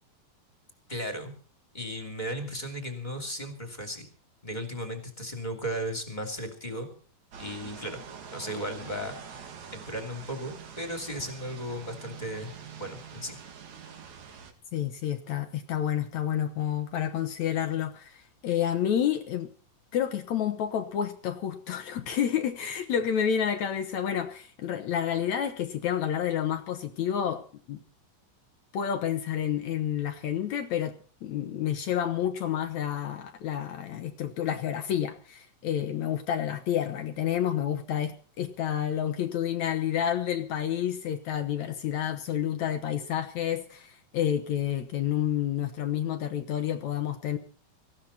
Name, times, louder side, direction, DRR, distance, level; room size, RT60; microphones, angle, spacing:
voice 1, 0.9-1.3 1.7-4.1 4.4-6.9 7.4-8.0 8.3-9.4 9.7-12.5 12.8-13.4, equal, 15° left, 5 dB, 2.5 m, -35 dB
sound 1, 7.3-14.5, right 6 dB, 55° right, 3.1 m, -45 dB
voice 2, 14.7-19.5 19.9-27.8 28.7-30.9 31.2-47.4, left 9 dB, 65° left, 8 dB, 2.2 m, -29 dB
19.0 x 15.5 x 4.2 m, 0.41 s
omnidirectional pair, 4.0 m